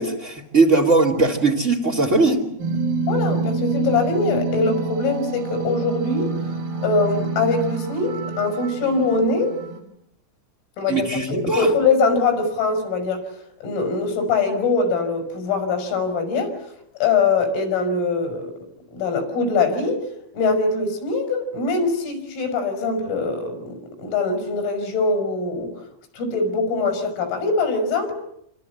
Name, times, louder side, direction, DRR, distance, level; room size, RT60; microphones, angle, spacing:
voice 1, 0.0-2.4 10.9-11.7, right 3 dB, 35° right, 0 dB, 1.2 m, -19 dB
sound 1, 2.6-9.8, right 3 dB, 85° right, 8.0 m, -27 dB
voice 2, 3.1-6.3 6.8-9.6 10.8-13.2 13.6-16.5 17.0-18.5 18.9-20.1 20.3-25.7 26.1-28.1, left 3 dB, 85° left, 6 dB, 7.8 m, -22 dB
27.5 x 26.5 x 8.0 m, 0.75 s
omnidirectional pair, 5.9 m